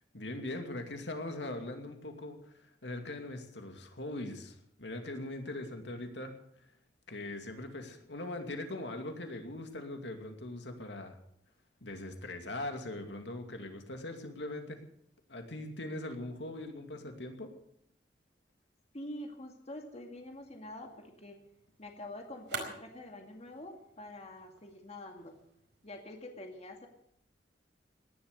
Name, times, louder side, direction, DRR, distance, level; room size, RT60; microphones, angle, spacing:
voice 1, 0.1-6.7 7.1-11.2 11.8-14.8 15.3-17.5, left 2 dB, 75° left, 5 dB, 2.5 m, -41 dB
voice 2, 18.9-21.4 21.8-25.4 25.8-26.9, left 1 dB, 40° left, 3 dB, 2.2 m, -46 dB
sound 1, 20.1-26.1, right 4 dB, 85° right, 4.7 m, -49 dB
18.5 x 11.5 x 6.7 m, 0.72 s
head